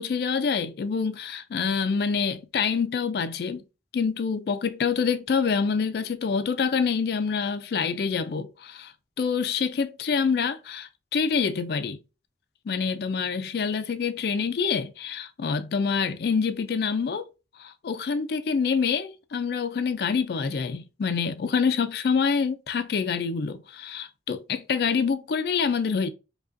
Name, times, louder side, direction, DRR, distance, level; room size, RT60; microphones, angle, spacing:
voice 1, 0.0-3.6 3.9-8.9 9.2-12.0 12.7-17.3 17.6-26.1, left 5 dB, 60° left, 0.3 m, -26 dB
4.9 x 2.3 x 2.5 m
head